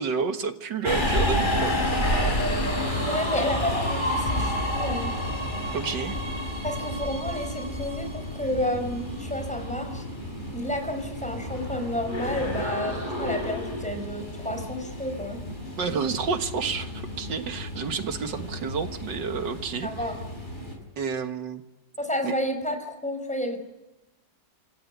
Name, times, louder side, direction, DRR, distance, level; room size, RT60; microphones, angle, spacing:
voice 1, 0.0-1.8 5.7-6.2 15.8-19.9 21.0-21.6 22.2-22.3, right 5 dB, 75° right, 8 dB, 2.2 m, -30 dB
Subway metro underground, 0.8-20.7, left 1 dB, 25° left, 5.6 m, -30 dB
voice 2, 3.0-5.1 6.6-10.0 10.5-15.4 19.8-20.2 22.0-23.6, left 1 dB, 5° left, 6 dB, 4.8 m, -31 dB
26.5 x 26.0 x 8.3 m, 1.0 s
omnidirectional pair, 1.9 m